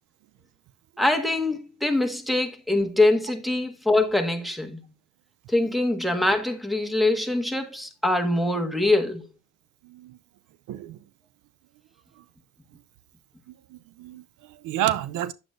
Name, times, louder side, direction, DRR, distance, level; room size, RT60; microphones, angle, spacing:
voice 1, 1.0-4.8 5.5-9.3, left 2 dB, ahead, 1.5 m, -23 dB
voice 2, 9.8-10.2 10.7-11.0 13.7-15.3, right 13 dB, 85° right, 0.6 m, -30 dB
9.5 x 7.7 x 2.5 m
cardioid pair, 90°, 30 cm